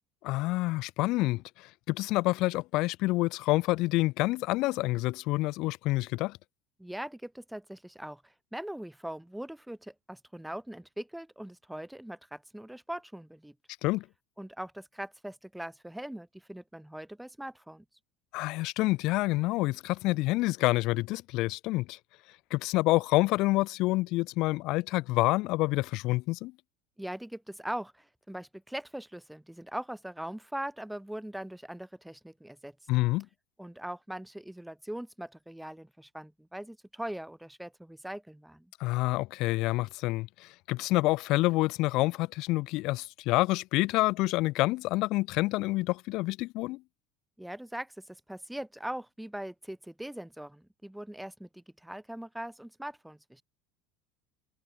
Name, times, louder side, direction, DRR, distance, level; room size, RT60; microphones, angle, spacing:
voice 1, 0.2-6.4 13.8-14.0 18.3-22.0 22.5-26.5 32.9-33.3 38.8-46.8, left 20 dB, 60° left, 0.4 m, -28 dB
voice 2, 6.8-13.5 14.4-17.8 27.0-32.8 33.6-38.7 47.4-53.4, right 1 dB, 5° right, 0.7 m, -41 dB
hypercardioid pair, 85°, 0 cm